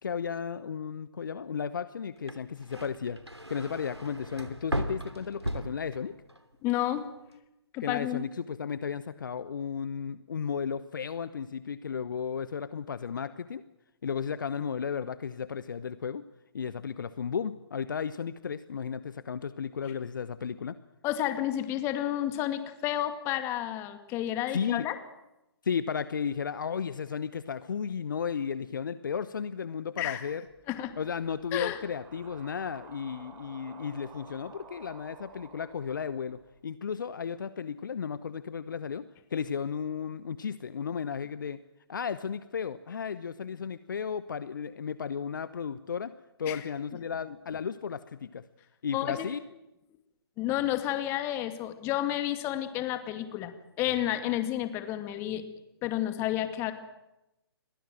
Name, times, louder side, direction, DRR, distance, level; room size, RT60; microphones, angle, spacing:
voice 1, 0.0-3.2 3.5-6.2 7.8-13.6 14.0-16.2 16.5-20.8 24.5-24.9 25.6-30.4 31.0-41.6 41.9-48.4 48.8-49.4, left 7 dB, 50° left, 15 dB, 1.0 m, -34 dB
sound 1, 2.2-6.4 6.8-7.3, right 1 dB, 90° right, 3.0 m, -37 dB
voice 2, 6.6-7.0 7.7-8.2 21.0-25.0 30.0-30.2 30.7-30.9 31.5-31.8 46.5-46.6 48.9-49.3 50.4-55.4 55.8-56.7, left 13 dB, 20° left, 9 dB, 2.2 m, -31 dB
sound 2, 30.5-36.6, right 5 dB, 15° right, 3.4 m, -53 dB
29.0 x 22.5 x 7.7 m, 0.92 s
figure-of-eight pair, 135°, 14 cm